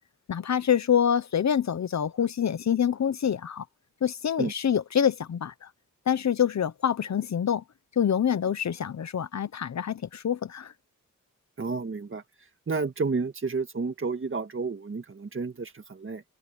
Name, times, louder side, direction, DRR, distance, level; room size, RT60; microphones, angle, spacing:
voice 1, 0.3-3.6 4.0-5.7 6.1-7.6 8.0-10.7, left 8 dB, 60° left, 0.8 m, -26 dB
voice 2, 11.6-12.2 12.7-16.2, right 4 dB, 40° right, 1.8 m, -31 dB
open air
wide cardioid pair, 150°, 32 cm